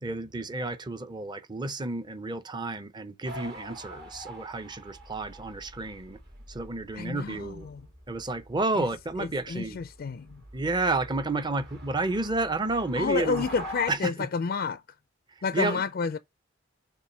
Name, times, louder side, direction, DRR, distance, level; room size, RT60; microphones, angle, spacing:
voice 1, 0.0-6.2 6.5-7.7 8.1-9.8 10.5-13.5 13.9-14.3 15.5-15.8, right 2 dB, 20° right, 0.6 m, -31 dB
sound 1, 3.2-13.9, right 1 dB, 55° right, 2.2 m, -45 dB
voice 2, 6.9-7.8 8.8-8.9 9.2-10.4 13.0-14.8 15.4-16.2, left 5 dB, 50° left, 0.4 m, -30 dB
7.0 x 2.6 x 5.5 m
head